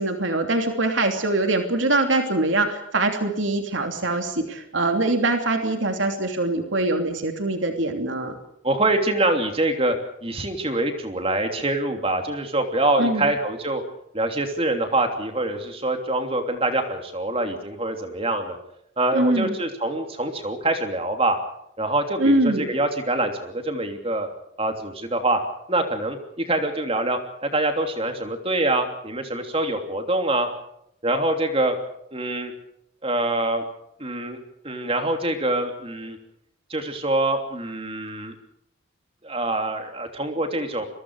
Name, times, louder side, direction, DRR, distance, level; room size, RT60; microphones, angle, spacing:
voice 1, 0.0-8.4 13.0-13.3 19.1-19.6 22.2-22.7, right 2 dB, 80° right, 5 dB, 3.0 m, -23 dB
voice 2, 8.6-9.9 10.2-13.8 14.1-18.6 19.0-21.4 21.8-24.3 24.6-25.4 25.7-30.5 31.0-31.7 32.1-32.5 33.0-33.6 34.0-34.4 34.6-36.2 36.7-38.3 39.2-40.9, right 2 dB, 30° right, 5 dB, 3.1 m, -25 dB
29.5 x 23.5 x 4.9 m, 0.77 s
head